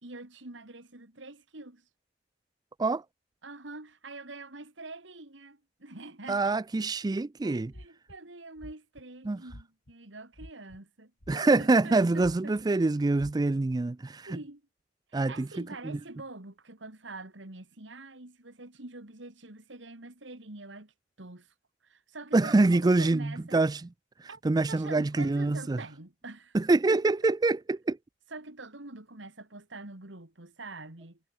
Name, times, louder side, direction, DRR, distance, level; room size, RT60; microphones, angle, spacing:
voice 1, 0.0-1.8 3.4-6.5 7.4-12.5 14.3-14.6 15.1-21.5 21.8-23.6 24.3-24.4 24.7-26.6 26.9-27.3 28.3-31.2, right 2 dB, 70° right, 2.7 m, -45 dB
voice 2, 6.3-7.7 9.2-9.4 11.3-14.4 15.1-15.5 15.8-16.0 22.3-23.9 24.2-25.8 26.5-28.0, right 3 dB, 20° right, 0.4 m, -25 dB
sound 1, 7.7-8.2 8.6-9.0 9.5-9.9 10.3-10.8 11.2-11.9 12.2-12.6 13.2-13.3, equal, 80° left, 7.2 m, -47 dB
head